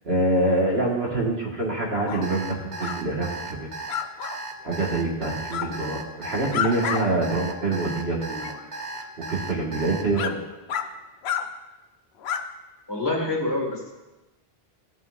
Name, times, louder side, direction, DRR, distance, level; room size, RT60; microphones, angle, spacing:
voice 1, 0.0-3.7 4.6-8.7 8.9-10.4, right 2 dB, 75° right, -4 dB, 2.0 m, -26 dB
sound 1, 2.1-2.3 2.8-3.0 3.9-4.4 5.5-5.7 6.2-7.0 7.4-7.5 8.4-8.5 9.3-9.4 10.2-10.3 10.7-10.9 11.2-11.4 12.2-12.4, left 8 dB, 85° left, 0.9 m, -29 dB
Alarm, 2.2-10.0, right 2 dB, 50° right, 1.0 m, -35 dB
voice 2, 5.6-6.0 12.9-13.9, left 2 dB, 25° left, -2 dB, 2.2 m, -28 dB
15.5 x 5.8 x 2.6 m, 1.1 s
omnidirectional pair, 1.0 m